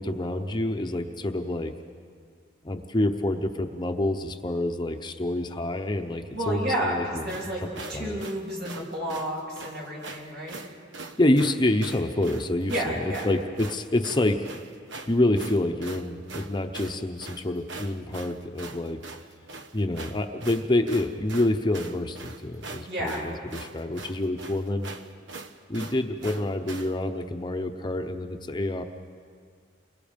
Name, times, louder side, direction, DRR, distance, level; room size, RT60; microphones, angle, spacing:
voice 1, 0.0-1.7 2.6-7.3 7.6-8.2 11.2-14.5 15.1-19.0 19.7-24.9 25.7-28.8, left 1 dB, 25° left, 6 dB, 0.8 m, -27 dB
voice 2, 6.3-7.6 7.9-10.6 12.7-13.3 22.9-23.3, equal, 60° right, -3 dB, 7.5 m, -31 dB
sound 1, 7.2-27.0, right 3 dB, 85° right, 1.1 m, -42 dB
29.0 x 23.0 x 5.2 m, 2.1 s
head